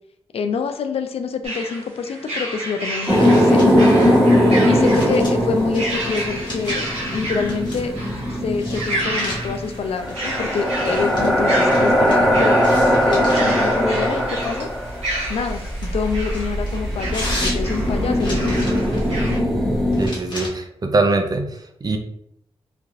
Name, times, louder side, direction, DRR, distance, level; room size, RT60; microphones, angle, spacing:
voice 1, 0.3-3.7 4.7-7.9 8.4-14.7 15.3-18.7, left 5 dB, 70° left, 7 dB, 0.4 m, -26 dB
sound 1, 1.4-19.4, right 1 dB, 75° right, 1.0 m, -31 dB
sound 2, 3.0-7.0 7.5-8.0 8.5-12.2 12.6-13.7 14.4-19.1 19.9-20.5, left 1 dB, 45° left, 1.1 m, -35 dB
sound 3, 3.1-20.1, equal, ahead, 0.9 m, -20 dB
voice 2, 20.0-21.5 21.8-22.0, right 2 dB, 40° right, 5 dB, 0.5 m, -21 dB
3.2 x 2.4 x 2.4 m, 0.73 s
cardioid pair, 65°, 11 cm